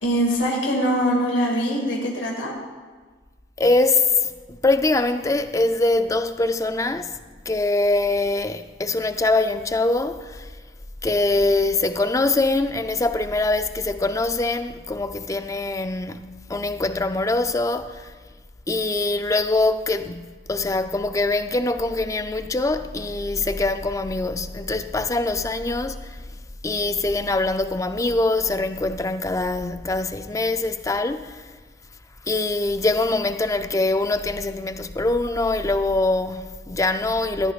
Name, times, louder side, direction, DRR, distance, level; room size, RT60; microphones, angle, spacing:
voice 1, 0.0-2.5, equal, 75° left, 2.1 m, -22 dB
voice 2, 3.6-7.2 7.5-10.5 11.0-16.2 16.5-18.1 18.7-26.2 26.6-31.5 32.3-37.5, left 2 dB, 15° left, 0.4 m, -23 dB
19.0 x 14.0 x 2.4 m
head